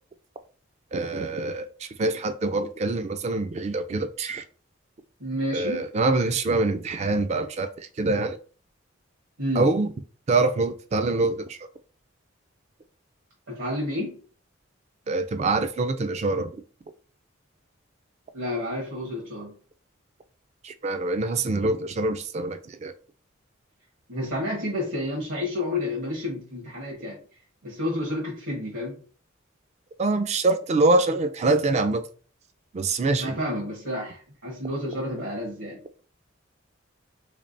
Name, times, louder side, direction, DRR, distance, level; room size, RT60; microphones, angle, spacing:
voice 1, 0.9-4.4 5.5-8.4 9.6-9.9 10.3-11.6 15.1-16.5 20.6-22.9 30.0-32.0 32.7-33.4, right 2 dB, 35° right, 10 dB, 0.3 m, -25 dB
voice 2, 5.2-5.9 9.4-9.7 13.5-14.2 18.3-19.5 24.1-27.2 27.6-29.0 33.2-35.8, left 1 dB, 75° right, -4 dB, 1.2 m, -30 dB
3.5 x 3.2 x 2.6 m, 0.40 s
head